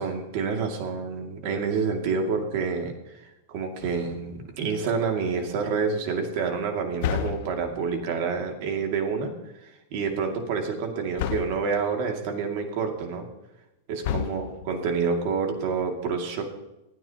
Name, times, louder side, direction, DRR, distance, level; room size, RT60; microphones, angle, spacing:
voice 1, 0.0-9.3 9.6-13.3 13.9-16.4, right 5 dB, 40° right, 3 dB, 2.4 m, -28 dB
sound 1, 3.8-4.5 7.0-7.9 11.2-11.8 14.0-14.9, left 9 dB, 45° left, 0.9 m, -31 dB
27.5 x 9.2 x 3.0 m, 0.94 s
supercardioid pair, 170°, 0 cm